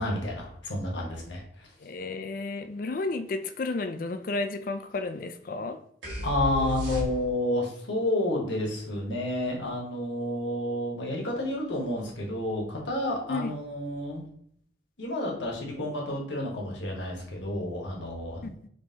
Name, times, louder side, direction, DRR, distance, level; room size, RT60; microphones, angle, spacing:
voice 1, 0.0-1.7 6.2-14.2 15.0-18.5, left 1 dB, 80° left, 1.2 m, -30 dB
voice 2, 1.8-5.8 13.3-13.5 18.4-18.5, left 3 dB, 45° left, 0.4 m, -32 dB
sound 1, 6.0-7.6, equal, 85° right, 1.5 m, -33 dB
5.3 x 3.1 x 2.8 m
head